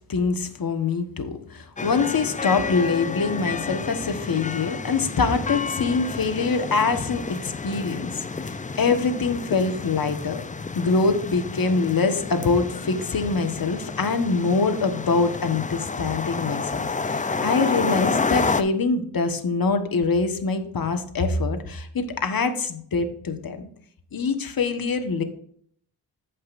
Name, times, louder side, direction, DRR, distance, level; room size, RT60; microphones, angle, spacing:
voice 1, 0.1-10.4 10.7-23.7 24.1-25.2, left 4 dB, 55° left, 7 dB, 1.4 m, -24 dB
sound 1, 1.8-18.6, left 4 dB, 20° left, 0.5 m, -30 dB
15.0 x 5.4 x 2.6 m, 0.62 s
cardioid pair, 60°, 42 cm